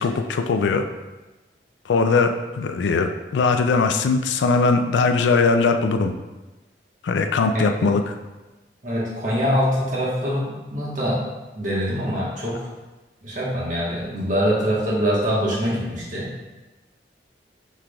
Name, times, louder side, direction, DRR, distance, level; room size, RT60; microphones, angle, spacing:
voice 1, 0.0-0.8 1.9-6.1 7.0-8.1, left 4 dB, 90° left, 7 dB, 0.4 m, -20 dB
voice 2, 7.5-7.9 8.8-11.2 11.5-12.7 13.2-16.3, equal, 45° right, -6 dB, 1.2 m, -24 dB
5.8 x 3.3 x 2.3 m, 1.1 s
head